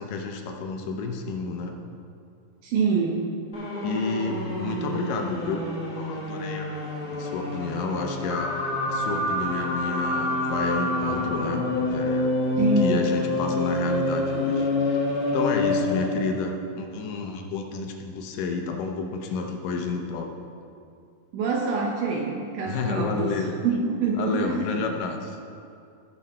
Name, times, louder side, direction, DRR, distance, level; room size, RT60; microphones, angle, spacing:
voice 1, 0.0-1.8 3.8-5.6 6.0-15.0 15.3-20.3 22.7-23.5 24.2-25.4, left 4 dB, 75° left, 3 dB, 2.2 m, -30 dB
voice 2, 2.6-3.3 12.6-13.1 21.3-23.3 23.6-24.6, right 4 dB, 75° right, -1 dB, 2.4 m, -25 dB
sound 1, 3.5-16.2, left 2 dB, 25° left, 1.1 m, -27 dB
15.5 x 5.5 x 4.2 m, 2.5 s
omnidirectional pair, 4.1 m